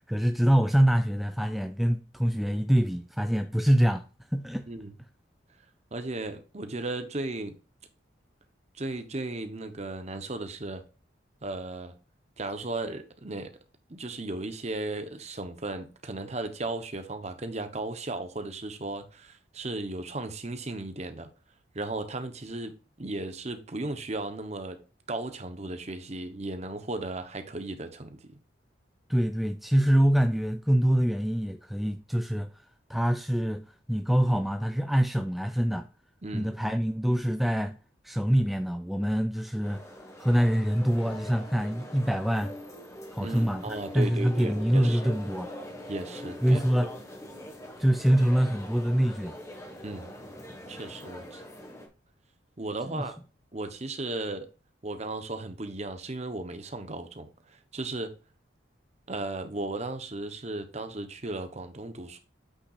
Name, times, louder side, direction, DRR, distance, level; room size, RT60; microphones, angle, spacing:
voice 1, 0.0-4.0 4.3-4.7 29.1-32.5 32.9-35.9 36.3-37.7 38.0-39.8 40.2-42.5 43.1-45.5 46.4-46.9 47.8-49.4 52.9-53.1, equal, ahead, 0.3 m, -25 dB
voice 2, 4.7-5.0 5.9-7.6 8.7-10.8 11.4-11.9 12.4-13.5 13.9-21.3 21.7-24.8 25.1-28.3 36.2-36.5 43.2-45.2 45.9-46.9 49.8-50.1 50.7-51.4 52.6-53.1 53.5-54.5 54.8-58.1 59.1-62.2, right 2 dB, 35° right, 0.9 m, -35 dB
sound 1, 39.6-51.9, left 1 dB, 15° left, 1.4 m, -43 dB
sound 2, 40.7-45.5, left 1 dB, 35° left, 3.0 m, -62 dB
8.4 x 5.8 x 2.5 m
head